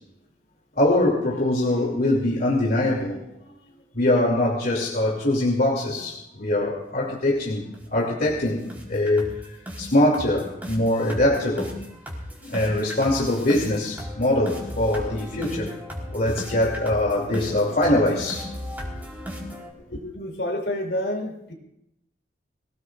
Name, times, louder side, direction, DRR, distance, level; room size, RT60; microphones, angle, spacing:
voice 1, 0.8-3.2 3.9-7.6 7.9-9.3 9.8-11.7 12.4-15.7 16.1-18.4 19.9-20.0, left 1 dB, 55° left, -3 dB, 2.8 m, -23 dB
sound 1, 7.3-7.4 7.7-7.9 8.2-8.4 8.7-19.7, equal, 10° right, 4.3 m, -36 dB
voice 2, 20.1-21.5, left 1 dB, 75° left, 2 dB, 4.2 m, -28 dB
25.0 x 18.5 x 2.6 m, 0.84 s
head